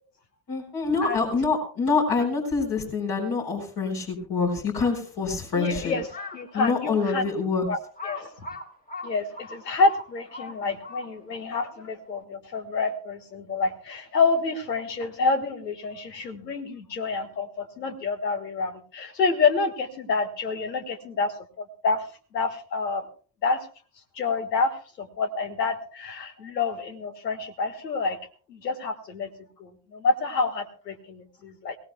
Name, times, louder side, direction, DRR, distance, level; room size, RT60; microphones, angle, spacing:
voice 1, 0.5-5.9 6.5-7.7, left 4 dB, 55° left, -1 dB, 4.6 m, -26 dB
voice 2, 5.5-7.2 7.7-7.8 8.0-8.3 9.0-22.0 22.3-23.1 23.4-23.7 24.2-24.7 25.0-28.2 28.5-29.3 29.6-31.8, left 4 dB, 90° left, 7 dB, 1.6 m, -28 dB
Crow, 6.0-6.5 7.1-7.2 8.0-11.4, left 3 dB, 15° left, 1.7 m, -39 dB
22.5 x 17.5 x 2.2 m, 0.39 s
hypercardioid pair, 55°, 48 cm